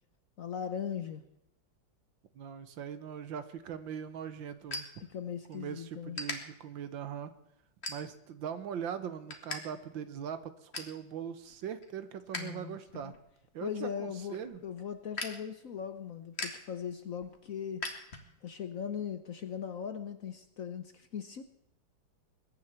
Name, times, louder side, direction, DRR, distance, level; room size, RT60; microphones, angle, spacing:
voice 1, 0.4-1.2 5.1-6.2 12.3-13.1 13.6-17.9 18.4-21.4, left 8 dB, 55° left, 10 dB, 1.0 m, -39 dB
voice 2, 2.4-5.0 5.5-7.3 7.9-13.1 13.5-14.6, right 8 dB, 75° right, 12 dB, 1.7 m, -41 dB
sound 1, 3.6-5.6 6.1-6.4 6.9-7.2 7.8-8.4 8.8-9.6 9.9-10.0 10.3-11.0 11.4-12.5 12.8-18.6, left 2 dB, 35° left, 2.0 m, -42 dB
21.5 x 10.0 x 4.4 m, 0.82 s
omnidirectional pair, 2.2 m